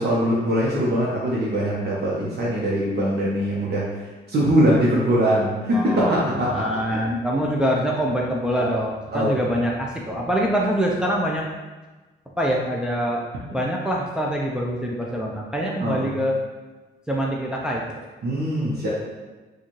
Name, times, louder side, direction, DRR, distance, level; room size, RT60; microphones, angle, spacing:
voice 1, 0.0-3.8 4.3-7.0 8.5-8.7 9.1-9.3 15.8-16.1 18.2-18.9, equal, 55° right, -6 dB, 0.9 m, -22 dB
voice 2, 5.7-11.5 12.4-13.3 13.5-16.4 17.1-18.0, equal, 5° right, -2 dB, 0.4 m, -24 dB
4.2 x 2.4 x 3.0 m, 1.2 s
cardioid pair, 90°, 20 cm